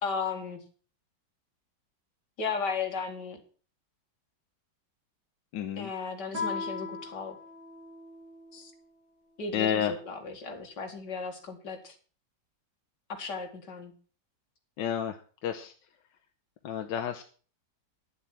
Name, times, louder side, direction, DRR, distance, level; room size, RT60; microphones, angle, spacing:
voice 1, 0.0-0.6 2.4-3.4 5.8-7.4 8.5-8.7 9.4-12.0 13.1-13.9, left 5 dB, 70° left, 4 dB, 2.6 m, -35 dB
voice 2, 5.5-5.9 9.5-9.9 14.8-15.1 15.4-15.7 16.6-17.2, left 9 dB, 90° left, 6 dB, 1.6 m, -30 dB
Guitar, 6.3-8.8, left 4 dB, 50° right, 4.7 m, -38 dB
11.0 x 7.4 x 7.5 m, 0.41 s
omnidirectional pair, 1.9 m